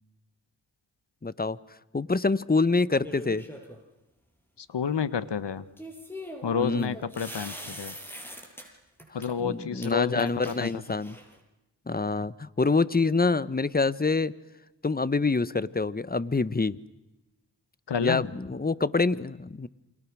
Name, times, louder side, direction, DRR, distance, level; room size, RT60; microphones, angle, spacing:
voice 1, 1.2-1.6 1.9-3.4 6.6-6.9 9.4-11.2 11.9-14.3 14.8-16.8 18.0-19.7, left 3 dB, 20° left, 17 dB, 1.1 m, -26 dB
sound 1, 3.0-3.8 5.8-8.6 9.0-9.3 9.8-9.9 10.2-11.4, equal, 5° left, 7.5 m, -42 dB
voice 2, 4.6-5.6 6.4-7.9 9.1-10.8 17.9-18.3, left 7 dB, 65° left, 14 dB, 1.6 m, -30 dB
29.0 x 25.5 x 6.3 m, 1.0 s
cardioid pair, 55°, 45 cm